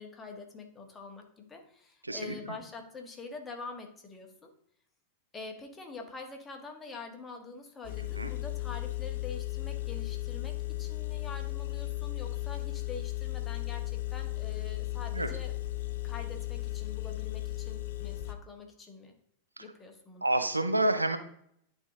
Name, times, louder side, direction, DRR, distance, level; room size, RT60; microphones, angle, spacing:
voice 1, 0.0-4.5 5.3-15.6 16.0-19.2 19.6-20.3, left 4 dB, 15° left, 3 dB, 1.6 m, -45 dB
voice 2, 2.0-2.3 8.2-8.3 15.1-15.3 20.2-21.2, right 1 dB, 85° right, 8 dB, 0.7 m, -28 dB
Engine, 7.8-18.3, left 17 dB, 55° left, 0.6 m, -35 dB
10.5 x 3.8 x 3.8 m, 0.67 s
figure-of-eight pair, 90°, 0 cm